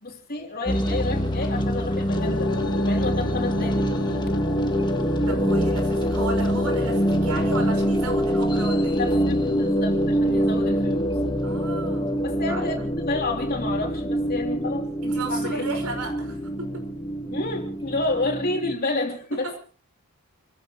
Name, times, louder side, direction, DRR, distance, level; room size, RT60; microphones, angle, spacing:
voice 1, 0.0-2.5 2.8-4.2 8.9-11.5 12.2-14.9 15.3-15.7 17.3-19.6, left 2 dB, 45° left, 2 dB, 3.2 m, -30 dB
sound 1, 0.7-18.7, equal, 20° left, 1.4 m, -24 dB
sound 2, 2.1-8.4, left 3 dB, 70° left, 1.0 m, -36 dB
voice 2, 5.3-9.0 11.4-12.2 12.5-12.9 15.0-16.8 19.3-19.6, right 3 dB, 85° right, 3 dB, 5.2 m, -34 dB
29.0 x 14.5 x 3.1 m, 0.40 s
head